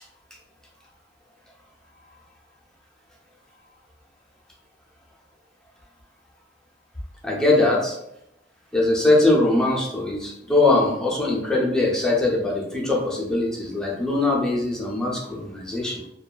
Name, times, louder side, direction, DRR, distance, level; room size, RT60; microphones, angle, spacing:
voice 1, 7.2-8.0 8.7-16.0, left 2 dB, 5° left, -3 dB, 0.5 m, -21 dB
2.7 x 2.2 x 2.3 m, 0.81 s
head